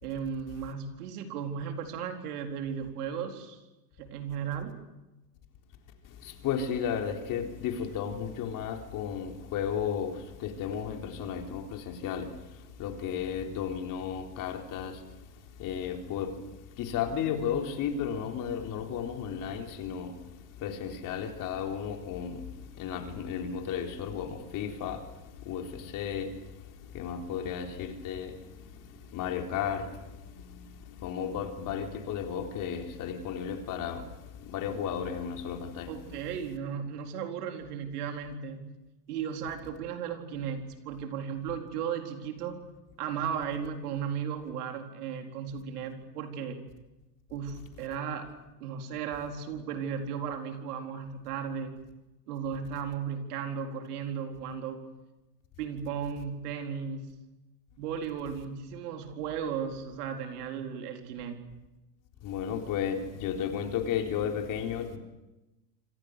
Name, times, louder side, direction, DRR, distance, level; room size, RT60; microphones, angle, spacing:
voice 1, 0.0-3.6 4.0-4.8 35.9-38.6 39.1-42.7 43.0-46.6 47.3-48.3 48.6-51.8 52.3-54.8 55.6-57.1 57.8-61.4, right 7 dB, 65° right, 4.3 m, -35 dB
voice 2, 6.2-12.3 12.8-15.0 15.6-16.3 16.8-20.2 20.6-22.4 22.8-25.0 25.5-26.3 26.9-28.4 29.1-29.9 30.5-30.6 31.0-34.0 34.5-35.9 62.2-65.0, left 8 dB, 40° left, 4.0 m, -33 dB
27.5 x 26.5 x 6.7 m
hypercardioid pair, 115°, 49 cm